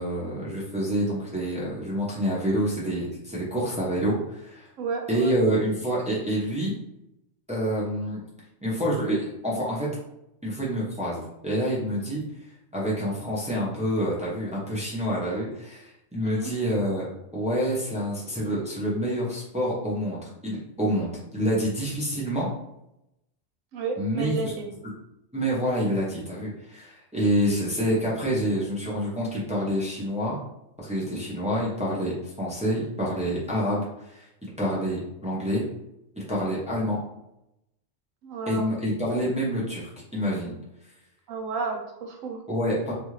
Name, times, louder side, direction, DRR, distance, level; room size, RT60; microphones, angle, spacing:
voice 1, 0.0-4.7 5.1-6.7 7.5-8.2 8.6-9.9 10.4-12.2 12.7-17.1 17.3-22.5 24.0-24.5 25.3-30.4 30.8-35.6 36.2-37.0 38.5-40.5 42.5-42.9, equal, 10° right, -6 dB, 0.3 m, -27 dB
voice 2, 4.8-5.3 16.2-16.5 23.7-24.7 38.2-38.7 41.3-42.4, right 4 dB, 85° right, 2 dB, 1.0 m, -32 dB
2.6 x 2.4 x 3.1 m, 0.85 s
omnidirectional pair, 1.4 m